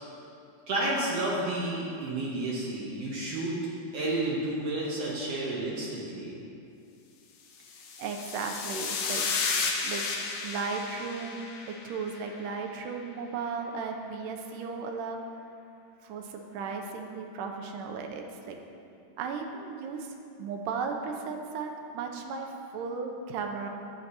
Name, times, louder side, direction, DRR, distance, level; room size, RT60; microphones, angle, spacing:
voice 1, 0.7-3.6 3.9-6.4, right 2 dB, 65° right, -5 dB, 1.7 m, -31 dB
sound 1, 7.7-12.2, left 4 dB, 75° left, 1.5 m, -33 dB
voice 2, 8.0-9.3 9.8-10.1 10.4-15.2 16.0-18.6 19.2-20.1 20.4-23.7, right 5 dB, 85° right, 3 dB, 2.3 m, -35 dB
11.0 x 7.7 x 2.8 m, 2.6 s
omnidirectional pair, 3.7 m